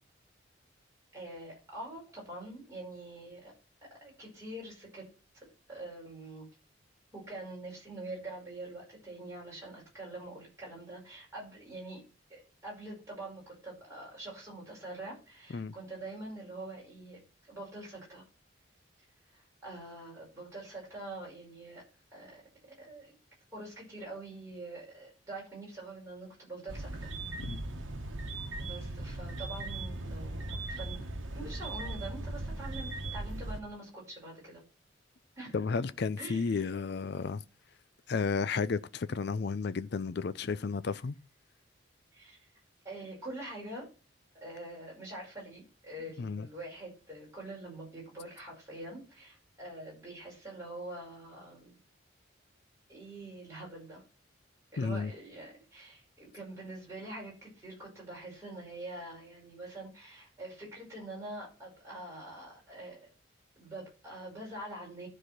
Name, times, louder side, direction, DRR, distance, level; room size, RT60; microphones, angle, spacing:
voice 1, 1.1-3.5 4.0-5.0 5.3-6.5 7.1-12.0 12.3-17.2 17.5-18.2 19.3-21.8 22.1-22.4 22.7-23.1 23.5-27.2 28.6-34.6 35.4-35.6 36.2-36.7 42.1-42.5 42.8-43.9 44.4-51.8 52.9-54.0 54.7-63.1 63.6-65.1, right 2 dB, 15° right, 5.3 m, -45 dB
sound 1, 26.7-33.6, right 2 dB, 70° right, 1.3 m, -38 dB
voice 2, 27.4-27.7 35.5-37.4 38.1-41.2 46.2-46.5 54.8-55.1, left 5 dB, 55° left, 0.4 m, -32 dB
12.0 x 4.9 x 5.9 m
head